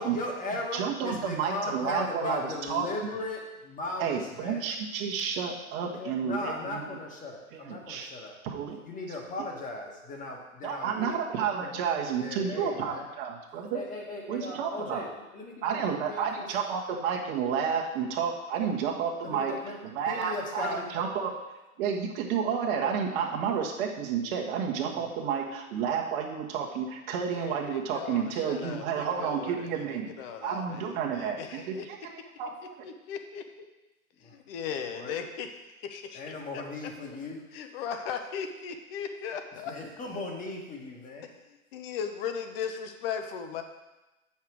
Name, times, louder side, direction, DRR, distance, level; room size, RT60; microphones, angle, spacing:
voice 1, 0.0-4.7 5.8-8.4 8.6-11.2 11.6-11.7 12.2-13.0 13.7-16.6 19.2-20.9 24.8-24.9 34.2-34.3 34.9-35.1 36.1-37.4 39.6-41.3, left 2 dB, 20° left, 0 dB, 1.5 m, -37 dB
voice 2, 0.7-2.9 4.0-6.8 7.5-8.1 8.4-8.8 10.6-13.8 14.3-15.0 15.6-19.6 19.9-21.3 21.8-30.1 30.4-32.1 32.4-32.9, right 7 dB, 40° right, 0 dB, 1.5 m, -31 dB
voice 3, 27.3-31.9 32.8-33.5 34.2-35.5 35.8-36.3 37.5-39.7 41.5-43.6, left 7 dB, 40° left, 6 dB, 1.0 m, -37 dB
8.3 x 5.9 x 4.7 m, 1.0 s
hypercardioid pair, 115°, 43 cm